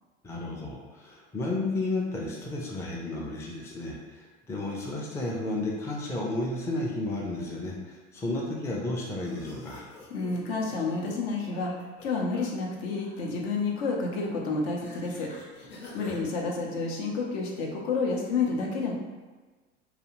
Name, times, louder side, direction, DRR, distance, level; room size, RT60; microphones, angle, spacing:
voice 1, 0.2-9.9 16.1-16.2, left 2 dB, 10° left, -3 dB, 0.4 m, -32 dB
sound 1, 9.2-12.4 12.8-13.3 14.8-16.2, left 2 dB, 35° left, 0.8 m, -48 dB
voice 2, 10.1-15.3 15.9-18.9, left 4 dB, 65° left, -1 dB, 0.7 m, -30 dB
2.4 x 2.3 x 3.0 m, 1.3 s
hypercardioid pair, 80°, 35 cm